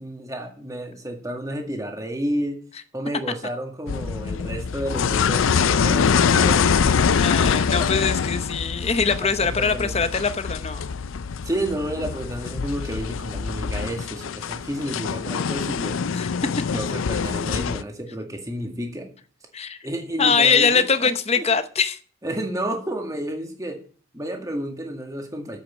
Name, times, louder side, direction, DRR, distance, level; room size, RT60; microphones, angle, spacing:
voice 1, 0.0-2.6 2.9-7.0 7.8-7.9 9.2-10.1 11.4-16.0 16.7-19.1 19.8-21.1 21.4-21.5 22.2-23.8 24.1-25.6, right 1 dB, 15° right, 1.9 m, -31 dB
sound 1, 3.9-17.8, left 6 dB, 75° left, 0.5 m, -24 dB
voice 2, 7.2-10.8 16.1-16.3 19.5-19.8 20.2-22.0, left 5 dB, 30° left, 0.8 m, -22 dB
8.8 x 8.0 x 7.3 m
head